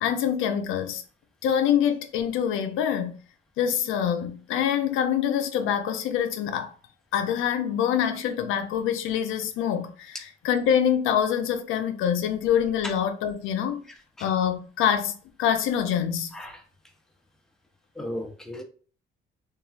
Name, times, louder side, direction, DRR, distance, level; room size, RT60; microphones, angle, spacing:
voice 1, 0.0-1.0 1.4-3.1 3.6-6.7 7.1-13.8 14.2-15.1 15.4-16.3, left 9 dB, 90° left, 0.4 m, -25 dB
voice 2, 16.3-16.6 18.0-18.6, left 1 dB, ahead, 0.5 m, -35 dB
3.0 x 2.3 x 2.4 m
cardioid pair, 90°, 20 cm